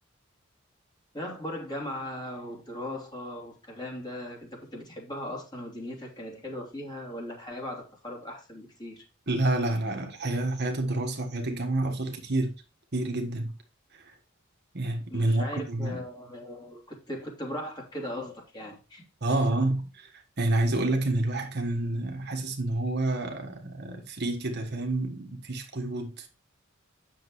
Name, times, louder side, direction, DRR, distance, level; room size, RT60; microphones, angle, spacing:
voice 1, 1.1-9.0 15.1-19.0 19.3-19.7, left 1 dB, 20° left, 3.1 m, -38 dB
voice 2, 9.3-12.5 12.9-13.5 13.9-14.1 14.7-16.0 19.2-20.1 20.4-26.3, right 2 dB, 55° right, 1.5 m, -28 dB
9.1 x 6.7 x 3.2 m
head